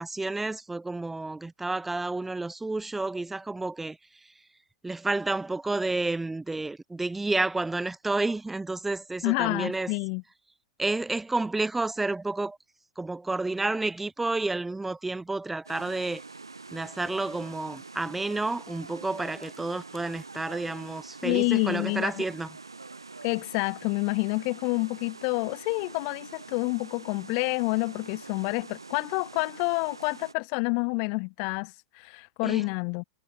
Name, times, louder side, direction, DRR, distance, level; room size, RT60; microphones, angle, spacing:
voice 1, 0.0-4.0 4.8-9.9 10.8-12.6 13.0-16.2 16.7-22.6 32.4-32.7, right 2 dB, 10° right, 1.2 m, -30 dB
voice 2, 9.2-10.2 21.2-22.2 23.2-33.0, left 40 dB or more, 45° left, 0.8 m, -28 dB
sound 1, 15.6-30.3, right 3 dB, 85° right, 5.0 m, -45 dB
figure-of-eight pair, 95°, 2 cm